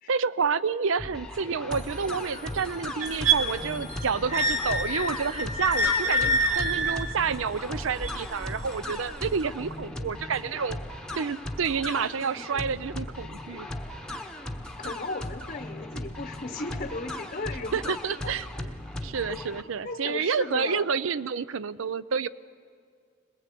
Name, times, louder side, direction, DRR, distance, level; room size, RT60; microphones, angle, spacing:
voice 1, 0.1-10.8 11.2-13.7 17.7-18.7 19.0-22.3, right 5 dB, 70° right, 17 dB, 0.5 m, -29 dB
sound 1, 1.0-19.6, left 1 dB, 5° left, 1.0 m, -38 dB
sound 2, 1.7-7.0, left 2 dB, 50° right, 7.8 m, -45 dB
sound 3, 3.0-9.1 9.8-9.9, right 1 dB, 15° right, 2.4 m, -27 dB
voice 2, 14.8-18.4 19.3-19.4 19.8-20.9, left 2 dB, 40° left, 6 dB, 0.8 m, -36 dB
21.5 x 20.5 x 8.3 m, 2.1 s
head